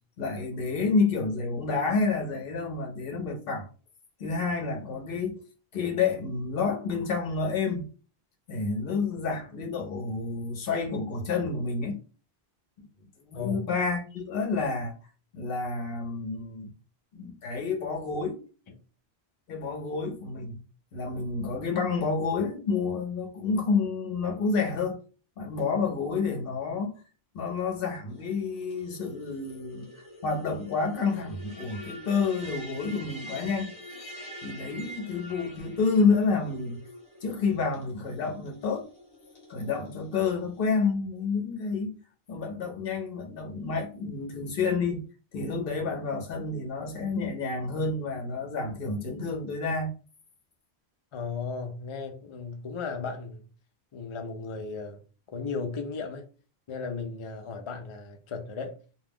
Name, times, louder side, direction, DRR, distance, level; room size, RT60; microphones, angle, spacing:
voice 1, 0.2-3.7 4.2-5.4 5.7-7.9 8.5-12.0 12.8-12.9 13.3-14.9 15.3-16.7 17.1-18.4 19.5-20.6 20.9-25.0 25.4-26.9 27.3-33.7 34.4-36.8 37.2-38.9 39.5-42.0 42.3-45.0 45.3-49.9, left 4 dB, 65° left, 0.9 m, -29 dB
voice 2, 13.3-13.7 51.1-53.5 53.9-55.0 55.3-56.3 56.7-58.8, left 4 dB, 50° left, 0.4 m, -35 dB
sound 1, 28.1-40.7, equal, 30° left, 1.2 m, -46 dB
2.3 x 2.3 x 3.4 m
omnidirectional pair, 1.1 m